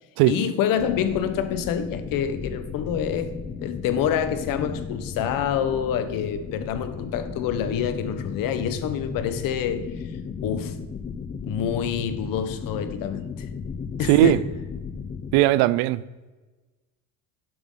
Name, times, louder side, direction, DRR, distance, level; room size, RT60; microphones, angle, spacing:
voice 1, 0.3-3.3 3.6-9.9 10.4-10.8 11.4-13.5 14.0-14.5, left 8 dB, 60° left, 1.2 m, -27 dB
sound 1, 0.8-15.4, left 5 dB, 20° left, 0.6 m, -35 dB
voice 2, 14.1-14.4 15.3-16.0, right 17 dB, 70° right, 0.6 m, -18 dB
11.0 x 7.7 x 3.9 m
supercardioid pair, 115°, 38 cm